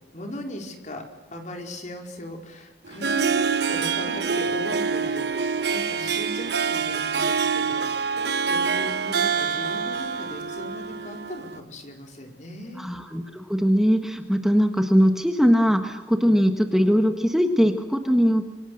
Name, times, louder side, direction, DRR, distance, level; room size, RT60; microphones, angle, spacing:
voice 1, 0.1-1.0 1.3-7.9 8.4-12.8, left 1 dB, 45° left, 3 dB, 4.8 m, -37 dB
Harp, 2.8-11.6, right 5 dB, 70° right, 1.1 m, -26 dB
voice 2, 12.8-18.4, equal, ahead, 5 dB, 1.5 m, -21 dB
27.0 x 25.0 x 6.5 m, 1.1 s
head